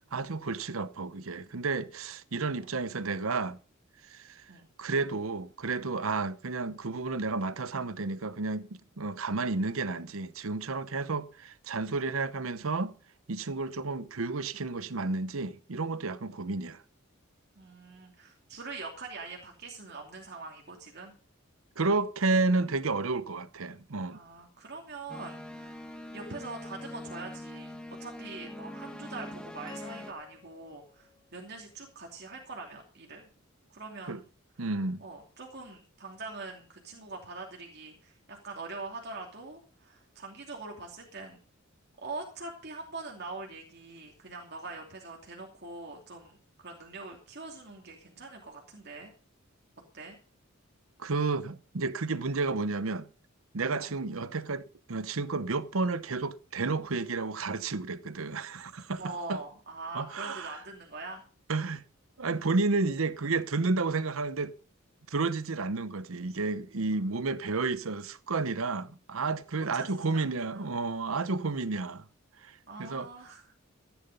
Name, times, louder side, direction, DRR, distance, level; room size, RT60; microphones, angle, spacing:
voice 1, 0.1-3.6 4.1-4.4 4.8-12.9 13.3-16.8 21.8-24.2 34.1-34.2 34.6-35.0 51.0-53.1 53.5-54.6 54.9-59.0 59.3-59.4 59.9-60.5 61.5-61.8 62.2-64.5 65.1-72.0 72.4-73.1, right 3 dB, 75° right, 0.9 m, -31 dB
voice 2, 17.6-21.1 24.1-25.8 26.1-33.2 33.7-34.3 35.0-41.4 42.0-49.1 49.9-50.2 53.7-53.9 59.0-61.2 69.7-70.7 72.7-73.4, right 3 dB, 50° right, 2.8 m, -43 dB
sound 1, 25.1-30.1, left 1 dB, 5° left, 1.4 m, -43 dB
sound 2, 29.7-32.0, left 6 dB, 20° left, 2.6 m, -54 dB
15.0 x 10.5 x 5.3 m
head